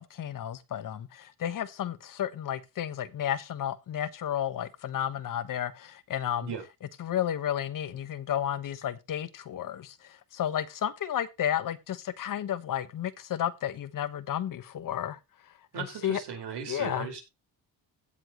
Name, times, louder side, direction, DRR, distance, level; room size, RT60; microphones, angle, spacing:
voice 1, 0.0-6.5 7.0-15.2 15.7-16.2 16.7-17.1, left 10 dB, 50° left, 1.2 m, -32 dB
voice 2, 15.7-17.2, right 7 dB, 70° right, 4.7 m, -37 dB
16.5 x 7.2 x 3.0 m
cardioid pair, 125°, 41 cm